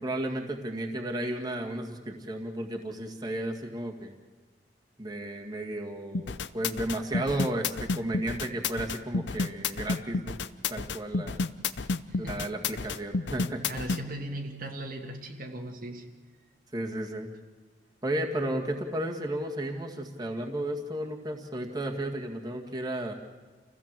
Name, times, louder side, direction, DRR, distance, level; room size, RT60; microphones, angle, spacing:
voice 1, 0.0-4.1 5.0-10.4 10.7-11.4 12.2-13.6 16.7-17.3 18.0-23.1, right 1 dB, 25° right, 1 dB, 2.0 m, -33 dB
sound 1, 6.1-14.0, left 4 dB, 80° left, 0.7 m, -30 dB
voice 2, 11.8-12.5 13.7-16.1, right 1 dB, 55° right, 2 dB, 1.7 m, -38 dB
27.5 x 16.0 x 7.6 m, 1.4 s
head